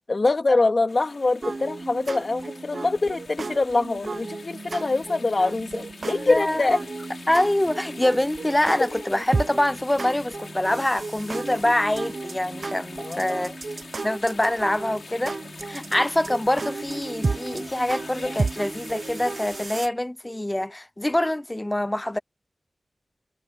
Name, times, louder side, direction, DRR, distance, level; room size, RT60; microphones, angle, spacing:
voice 1, 0.1-6.8 8.8-9.0 13.0-13.4, left 3 dB, 55° left, 2.4 m, -24 dB
sound 1, 0.9-19.9, left 4 dB, 85° left, 6.0 m, -44 dB
sound 2, 1.4-19.9, right 3 dB, 65° right, 0.8 m, -33 dB
voice 2, 6.3-6.7 7.3-13.5 14.0-15.4 15.7-22.2, left 1 dB, 20° left, 0.7 m, -25 dB
wide cardioid pair, 55°, 0 cm